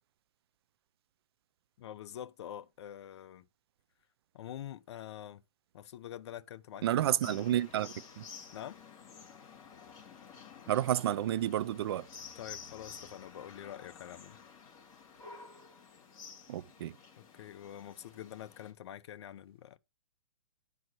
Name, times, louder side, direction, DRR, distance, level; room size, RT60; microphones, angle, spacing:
voice 1, 1.8-3.5 4.3-5.4 5.7-7.6 8.5-8.8 12.3-14.4 17.2-19.8, left 11 dB, 50° left, 0.9 m, -46 dB
voice 2, 6.8-8.2 10.7-12.1 16.5-17.0, right 12 dB, 45° right, 0.5 m, -30 dB
sound 1, 7.2-18.7, left 6 dB, 20° left, 3.4 m, -52 dB
10.5 x 4.6 x 6.2 m
hypercardioid pair, 155°, 18 cm